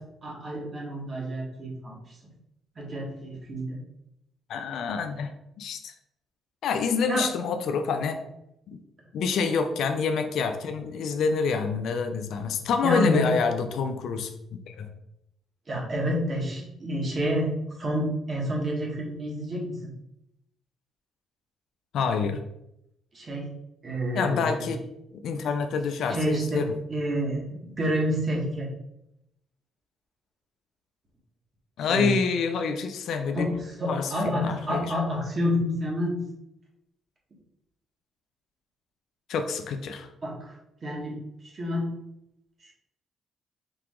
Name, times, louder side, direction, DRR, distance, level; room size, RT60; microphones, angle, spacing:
voice 1, 0.2-2.1 2.8-3.8 7.1-7.3 12.8-13.2 15.7-17.5 17.8-19.8 23.1-23.5 23.8-24.6 26.1-26.6 26.9-28.7 31.9-32.1 33.3-36.2 40.2-41.1 41.4-41.9, equal, 40° right, -2 dB, 1.6 m, -29 dB
voice 2, 4.5-5.3 5.6-5.9 6.6-8.2 8.7-8.8 9.1-14.3 14.7-14.9 21.9-22.4 24.1-24.8 25.1-26.7 31.8-33.5 33.9-34.9 39.3-40.1, left 5 dB, 75° left, 7 dB, 0.5 m, -27 dB
4.8 x 2.9 x 3.7 m, 0.82 s
cardioid pair, 90°, 0 cm